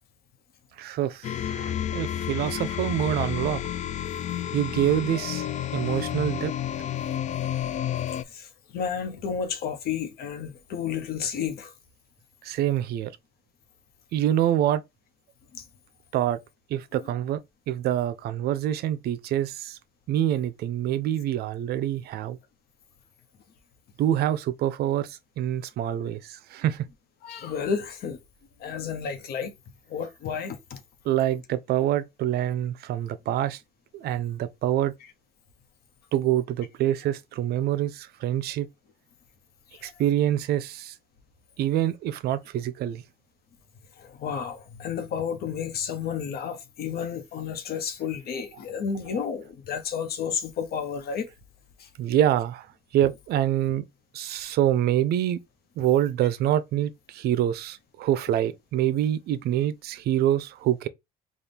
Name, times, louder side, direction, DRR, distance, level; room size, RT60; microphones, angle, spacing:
voice 1, 0.8-3.6 4.5-6.5 12.4-13.1 14.1-14.8 16.1-16.4 16.7-17.4 17.7-19.8 20.1-22.4 24.0-26.9 31.0-33.6 33.9-34.9 36.1-38.7 39.8-40.9 41.6-43.0 52.0-52.7 52.9-53.9 54.1-55.4 55.8-60.9, right 11 dB, 70° right, 0.5 m, -26 dB
sound 1, 1.2-8.2, left 10 dB, 45° left, 0.4 m, -30 dB
voice 2, 8.3-11.7 15.5-15.6 27.2-28.2 28.6-29.5 29.9-30.8 39.7-39.9 44.0-51.3 51.8-51.9, left 7 dB, 65° left, 1.0 m, -31 dB
4.2 x 2.4 x 3.3 m
cardioid pair, 110°, 17 cm